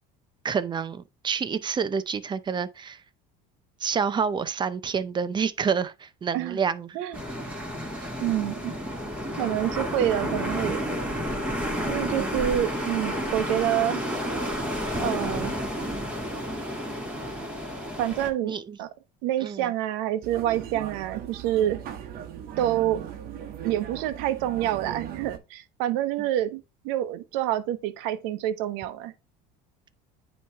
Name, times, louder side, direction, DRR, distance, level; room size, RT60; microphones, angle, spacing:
voice 1, 0.4-3.0 3.8-7.0 12.2-12.4 18.4-18.8 19.4-19.7, right 6 dB, 25° right, 0.6 m, -28 dB
sound 1, 7.1-18.3, equal, 10° right, 2.5 m, -31 dB
voice 2, 8.2-8.7 9.4-10.8 11.8-14.0 15.0-15.5 18.0-18.9 19.2-21.8 22.6-23.0 23.6-29.1, right 12 dB, 75° right, 0.9 m, -27 dB
sound 2, 20.2-25.4, right 9 dB, 50° right, 1.2 m, -38 dB
9.1 x 3.1 x 3.4 m
supercardioid pair, 110°, 19 cm